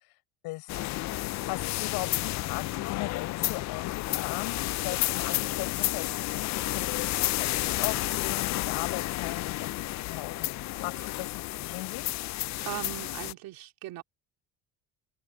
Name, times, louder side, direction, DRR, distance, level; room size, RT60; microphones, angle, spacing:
voice 1, 0.4-7.0 7.3-12.2, left 21 dB, 80° left, 6.0 m, -39 dB
sound 1, 0.7-13.3, left 17 dB, 50° left, 0.5 m, -31 dB
voice 2, 12.6-14.0, right 15 dB, 70° right, 3.6 m, -39 dB
open air
cardioid pair, 105°, 36 cm